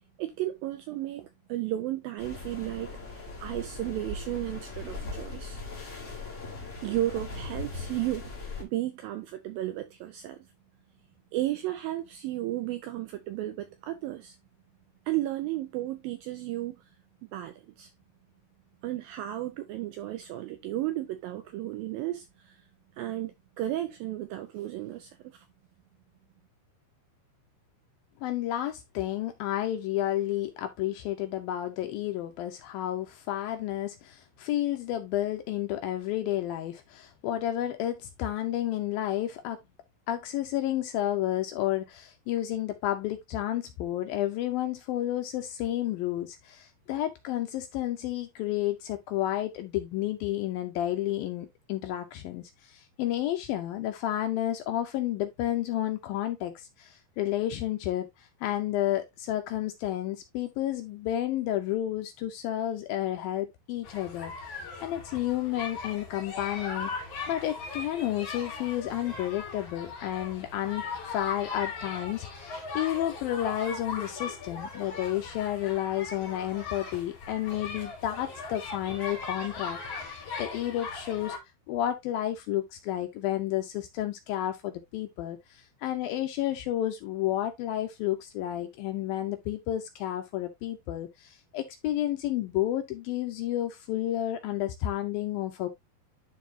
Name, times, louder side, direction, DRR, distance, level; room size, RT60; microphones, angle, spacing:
voice 1, 0.2-5.6 6.8-8.3 8.6-10.5 11.3-14.4 15.1-16.8 17.3-17.9 18.8-22.7 23.0-25.5, right 14 dB, 85° right, 2.1 m, -34 dB
sound 1, 2.2-8.6, left 3 dB, 25° left, 1.6 m, -39 dB
voice 2, 28.2-39.6 40.1-66.9 67.3-81.4 81.7-95.7, left 13 dB, 80° left, 2.2 m, -31 dB
sound 2, 63.8-81.4, left 4 dB, 50° left, 3.7 m, -39 dB
11.5 x 4.0 x 2.7 m
omnidirectional pair, 4.8 m